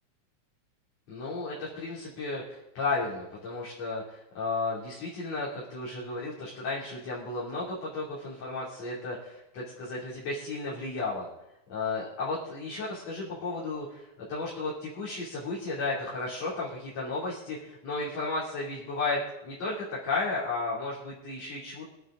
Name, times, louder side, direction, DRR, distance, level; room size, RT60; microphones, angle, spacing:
voice 1, 1.1-11.3 11.7-21.9, left 3 dB, 60° left, -8 dB, 3.9 m, -34 dB
23.0 x 9.0 x 3.7 m, 0.90 s
omnidirectional pair, 3.4 m